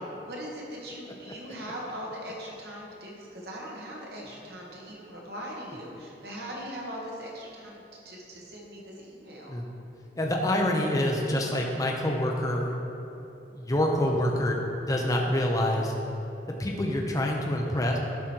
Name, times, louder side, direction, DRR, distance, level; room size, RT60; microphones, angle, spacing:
voice 1, 0.3-9.5, equal, 65° right, -3 dB, 1.7 m, -40 dB
voice 2, 10.1-12.8 13.5-15.9 16.5-18.0, left 1 dB, 20° left, 0 dB, 0.7 m, -26 dB
11.5 x 5.1 x 4.5 m, 2.9 s
head